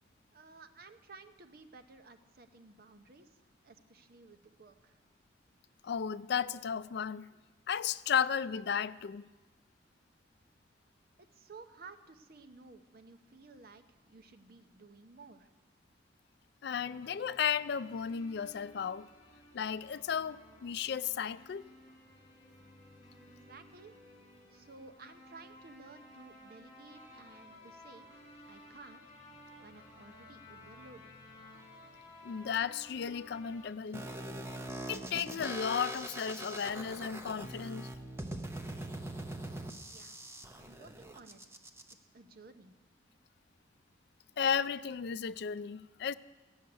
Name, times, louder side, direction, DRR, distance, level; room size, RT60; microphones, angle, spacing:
voice 1, 0.3-5.0 11.2-15.5 23.2-24.0 24.5-28.1 28.4-29.1 29.6-31.1 39.9-40.2 40.5-41.6 42.1-42.7, right 3 dB, 55° right, 0.8 m, -55 dB
voice 2, 5.8-7.3 7.7-9.3 16.6-19.1 19.5-21.6 32.2-34.0 34.9-37.9 44.4-46.1, left 7 dB, 65° left, 0.4 m, -34 dB
sound 1, 16.8-33.7, left 1 dB, 25° left, 4.2 m, -56 dB
sound 2, 33.9-41.9, right 1 dB, 15° right, 0.8 m, -42 dB
14.5 x 6.4 x 9.5 m
head